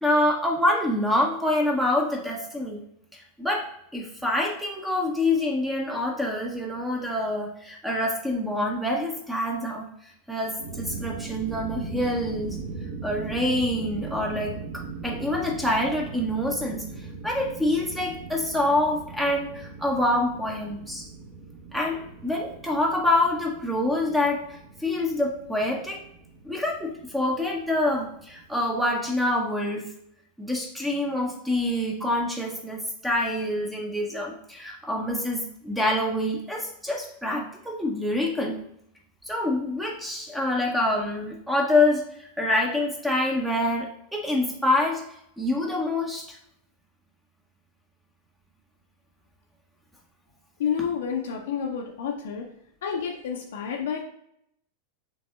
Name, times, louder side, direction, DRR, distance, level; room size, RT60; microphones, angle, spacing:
voice 1, 0.0-2.8 3.1-9.9 10.3-12.6 13.0-14.6 15.0-21.0 21.7-24.4 24.8-26.0 26.4-29.9 30.4-38.6 39.3-45.0 45.4-46.3, left 1 dB, 5° right, 0 dB, 0.7 m, -26 dB
sound 1, 10.5-29.3, right 4 dB, 50° right, 0.8 m, -40 dB
voice 2, 50.6-52.5 52.8-54.0, left 7 dB, 60° left, 1 dB, 0.5 m, -29 dB
6.1 x 3.4 x 2.3 m, 0.75 s
figure-of-eight pair, 90°, 0 cm